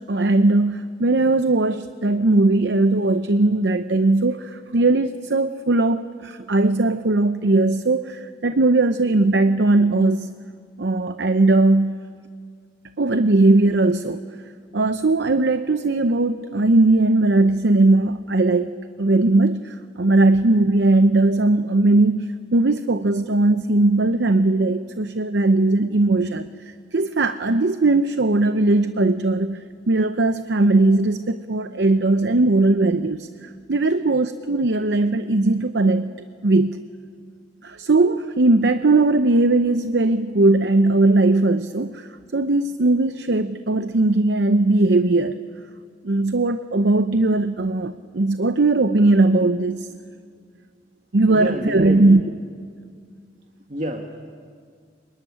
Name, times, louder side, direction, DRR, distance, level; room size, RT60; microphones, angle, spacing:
voice 1, 0.0-10.3 10.8-12.0 13.0-14.2 14.7-29.6 29.9-36.1 36.4-36.8 37.6-45.4 46.0-49.9 51.1-52.2, right 2 dB, 65° right, 10 dB, 0.7 m, -19 dB
voice 2, 51.2-52.2 53.7-54.3, equal, 40° right, 3 dB, 1.7 m, -29 dB
25.5 x 22.0 x 10.0 m, 2.1 s
head